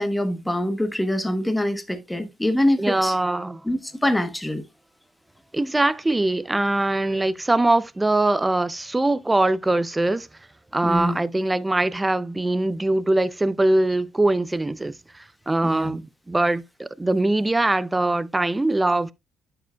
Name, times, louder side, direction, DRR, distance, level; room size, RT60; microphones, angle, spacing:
voice 1, 0.0-3.2 3.6-4.6 10.8-11.2 15.6-15.9, left 1 dB, 10° left, 1.0 m, -24 dB
voice 2, 2.8-3.6 5.5-10.3 10.7-19.1, right 2 dB, 15° right, 0.4 m, -22 dB
11.0 x 4.9 x 2.2 m
cardioid pair, 90°, 0 cm